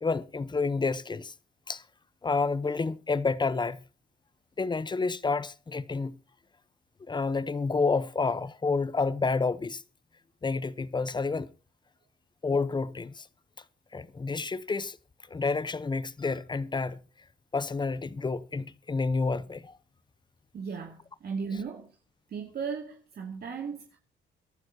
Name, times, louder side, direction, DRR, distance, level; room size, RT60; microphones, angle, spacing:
voice 1, 0.0-1.3 1.7-1.8 2.2-3.8 4.6-6.2 7.1-9.8 10.4-11.5 12.4-13.3 13.9-15.0 15.3-17.0 17.5-19.8, left 4 dB, 20° left, 0.9 m, -29 dB
voice 2, 20.5-22.0 22.3-24.0, right 5 dB, 55° right, 2.4 m, -36 dB
23.0 x 12.0 x 2.8 m
cardioid pair, 90°, 20 cm